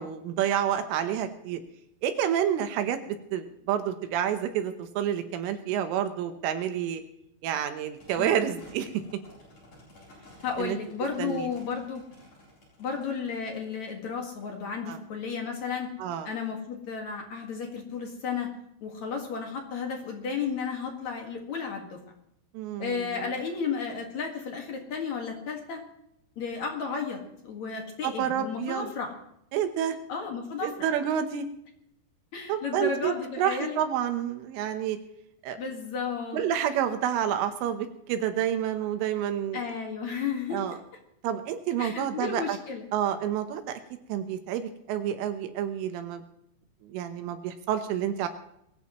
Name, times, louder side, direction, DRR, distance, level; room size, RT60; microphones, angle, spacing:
voice 1, 0.0-1.6 2.0-7.0 7.4-9.0 10.6-10.8 11.2-11.5 14.9-15.0 16.0-16.3 22.6-23.1 28.0-28.9 29.5-30.0 30.6-31.5 32.5-35.0 35.4-35.6 36.3-39.6 40.5-40.8 41.2-42.6 42.9-43.8 44.1-46.2 46.8-48.3, right 9 dB, 80° right, 8 dB, 3.5 m, -29 dB
sound 1, 8.0-14.9, left 1 dB, 35° left, 8.8 m, -54 dB
voice 2, 10.4-12.0 12.8-15.9 16.2-18.5 18.8-22.0 22.8-25.8 26.4-29.1 30.1-30.7 32.3-33.8 35.6-36.4 39.5-40.6 41.8-42.8, left 5 dB, 55° left, 2 dB, 2.2 m, -33 dB
22.0 x 17.5 x 3.1 m, 0.77 s
omnidirectional pair, 5.8 m